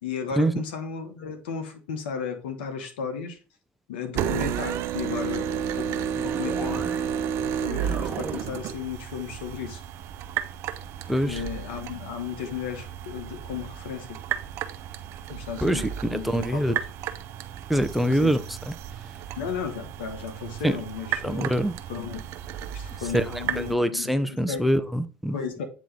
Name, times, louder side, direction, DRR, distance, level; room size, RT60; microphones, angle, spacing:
voice 1, 0.0-3.4 3.9-6.9 7.4-9.8 11.2-14.2 15.3-16.8 18.1-18.4 19.4-21.5 21.9-22.2 22.7-24.6 25.3-25.7, left 7 dB, 80° left, 1.1 m, -34 dB
sound 1, 4.1-23.7, right 9 dB, 60° right, 0.6 m, -33 dB
sound 2, 6.2-7.3 7.6-8.6, right 5 dB, 30° right, 1.1 m, -37 dB
voice 2, 11.1-11.4 15.6-16.7 17.7-18.4 20.6-20.8 21.2-21.7 23.1-23.2 23.6-25.4, equal, ahead, 0.6 m, -24 dB
8.4 x 3.0 x 3.9 m
hypercardioid pair, 80°, 6 cm